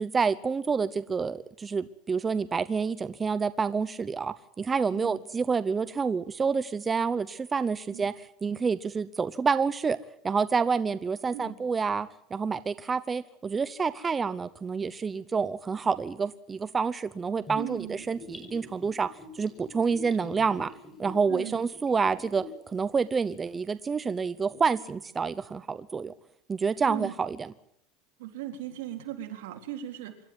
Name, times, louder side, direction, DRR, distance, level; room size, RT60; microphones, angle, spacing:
voice 1, 0.0-10.0 10.2-19.1 19.3-20.7 21.0-22.4 22.7-26.1 26.5-27.5, right 5 dB, 20° right, 14 dB, 0.8 m, -28 dB
voice 2, 4.9-5.2 7.9-8.1 11.3-11.6 17.5-18.1 21.3-21.6 26.9-27.2 28.2-30.3, right 11 dB, 90° right, 4 dB, 3.7 m, -38 dB
Gurgling / Bathtub (filling or washing), 17.5-22.6 22.9-23.0, left 2 dB, 15° left, 5.8 m, -45 dB
26.0 x 12.5 x 9.3 m, 0.71 s
supercardioid pair, 145°, 0 cm